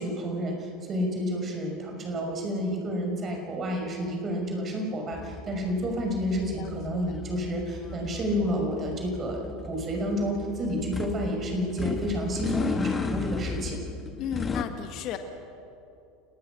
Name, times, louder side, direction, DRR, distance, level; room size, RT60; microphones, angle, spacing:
voice 1, 0.0-13.8, equal, 30° right, 2 dB, 6.0 m, -30 dB
sound 1, 5.1-14.6, left 4 dB, 20° left, 1.6 m, -35 dB
voice 2, 6.6-7.2 14.2-15.2, left 10 dB, 50° left, 7 dB, 1.7 m, -35 dB
29.5 x 19.0 x 6.3 m, 2.6 s
figure-of-eight pair, 75°, 0 cm